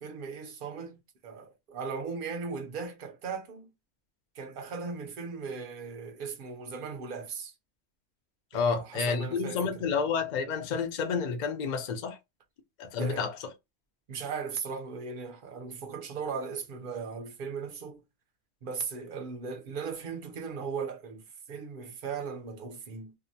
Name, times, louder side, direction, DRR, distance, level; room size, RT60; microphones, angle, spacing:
voice 1, 0.0-3.7 4.3-7.5 8.5-9.9 13.0-13.3 14.1-18.0 18.6-23.1, right 5 dB, 50° right, 0.7 m, -38 dB
voice 2, 8.5-12.2 12.8-13.3, left 5 dB, 50° left, 0.5 m, -30 dB
2.7 x 2.1 x 2.6 m
omnidirectional pair, 1.4 m